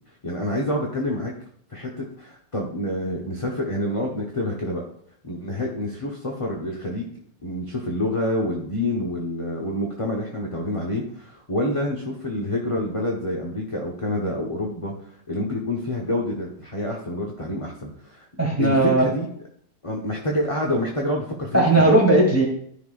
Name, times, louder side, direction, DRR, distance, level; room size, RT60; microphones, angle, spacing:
voice 1, 0.2-1.3 1.7-4.8 5.2-7.1 7.4-14.9 15.3-18.3 18.6-19.3 19.8-21.9, left 1 dB, 20° left, -2 dB, 1.0 m, -27 dB
voice 2, 18.4-19.1 21.5-22.5, right 2 dB, 10° right, -3 dB, 2.5 m, -17 dB
13.5 x 5.7 x 2.5 m, 0.64 s
omnidirectional pair, 2.0 m